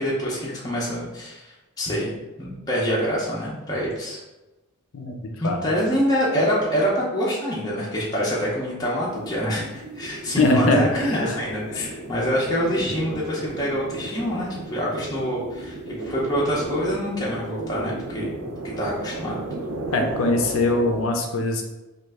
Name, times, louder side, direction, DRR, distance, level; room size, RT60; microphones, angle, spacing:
voice 1, 0.0-2.1 2.4-4.2 5.4-19.4, equal, 15° left, -6 dB, 0.6 m, -26 dB
voice 2, 4.9-5.6 10.4-11.4 19.9-21.6, left 2 dB, 65° left, 3 dB, 0.5 m, -22 dB
sound 1, 9.0-21.0, right 2 dB, 75° right, 0.5 m, -34 dB
3.1 x 2.4 x 3.4 m, 1.1 s
head